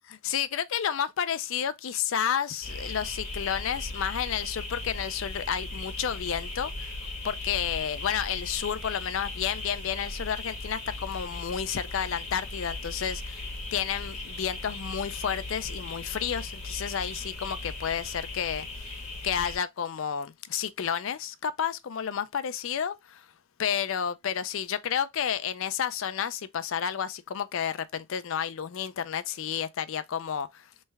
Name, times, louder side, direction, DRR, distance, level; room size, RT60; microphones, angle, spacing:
voice 1, 0.2-6.9 7.2-23.3 23.6-30.7, left 8 dB, 60° left, 0.4 m, -31 dB
sound 1, 2.6-19.6, left 2 dB, 30° left, 1.4 m, -38 dB
3.2 x 3.2 x 3.4 m
head